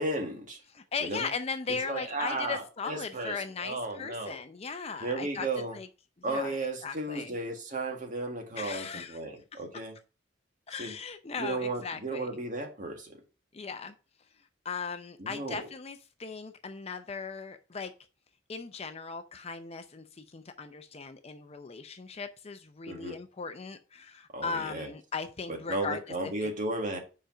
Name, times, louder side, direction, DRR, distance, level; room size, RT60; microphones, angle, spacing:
voice 1, 0.0-0.6 1.0-1.3 1.7-4.4 5.0-5.8 6.2-10.0 10.8-10.9 11.4-13.2 15.2-15.7 22.9-23.2 24.3-24.9 25.5-27.0, right 2 dB, 45° right, 1.7 m, -34 dB
voice 2, 0.7-5.5 5.7-5.9 6.3-6.6 6.8-7.3 8.6-9.2 10.7-12.3 13.5-13.9 14.6-17.9 18.5-26.5, left 5 dB, 35° left, 0.5 m, -38 dB
5.1 x 5.1 x 5.9 m
head